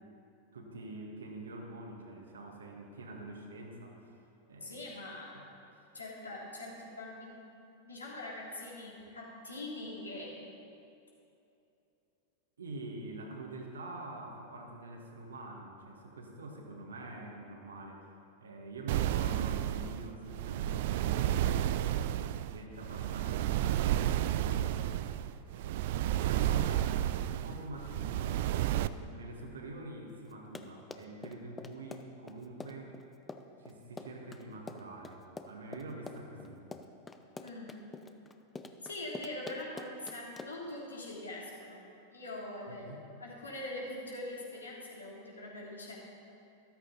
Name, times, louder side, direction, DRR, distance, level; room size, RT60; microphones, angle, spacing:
voice 1, 0.5-4.1 4.5-4.8 12.6-21.3 21.7-32.9 33.6-36.6 42.7-43.0, right 2 dB, 70° right, 1 dB, 1.9 m, -46 dB
voice 2, 4.6-5.4 5.9-7.3 7.8-10.3 37.4-37.7 38.8-41.8 42.1-45.9, left 1 dB, 75° left, -4 dB, 3.2 m, -43 dB
sound 1, 18.9-28.9, right 12 dB, 50° right, 0.3 m, -31 dB
Run, 30.3-40.7, left 3 dB, 15° left, 0.7 m, -46 dB
13.5 x 13.5 x 4.1 m, 2.7 s
figure-of-eight pair, 90°, 0 cm